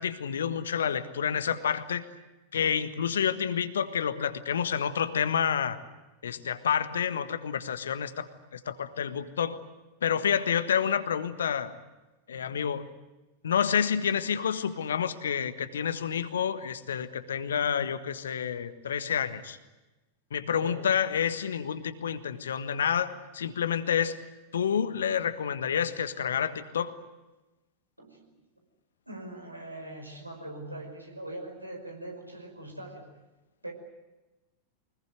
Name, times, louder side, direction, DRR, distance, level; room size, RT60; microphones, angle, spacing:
voice 1, 0.0-2.1 2.5-5.8 6.2-9.6 10.0-11.7 12.3-12.8 13.4-19.6 20.3-24.2 24.5-26.9, left 8 dB, 65° left, 12 dB, 1.5 m, -29 dB
voice 2, 20.5-20.8 28.0-28.2 29.1-33.1 33.6-33.7, right 1 dB, 85° right, 2 dB, 5.4 m, -41 dB
24.5 x 20.5 x 9.5 m, 1.1 s
figure-of-eight pair, 90°, 0 cm